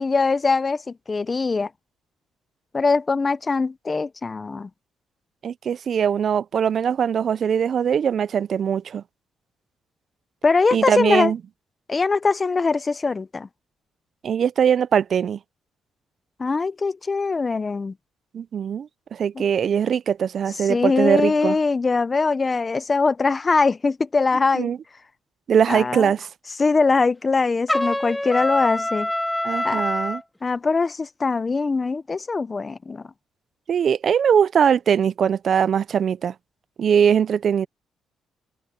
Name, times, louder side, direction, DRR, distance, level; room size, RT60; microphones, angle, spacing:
voice 1, 0.0-1.7 2.7-4.7 10.4-11.3 11.9-13.5 16.4-17.9 19.4-19.5 20.7-24.7 25.7-26.1 26.6-29.1 29.6-29.8 30.4-33.0, left 4 dB, 30° left, 0.8 m, -22 dB
voice 2, 5.4-9.0 10.7-11.4 14.2-15.4 18.3-21.6 24.5-24.8 25.5-26.3 29.4-30.2 33.7-36.3 36.8-37.7, right 8 dB, 55° right, 0.5 m, -21 dB
Trumpet, 27.7-30.2, left 1 dB, 10° left, 2.2 m, -25 dB
cardioid pair, 90°, 0 cm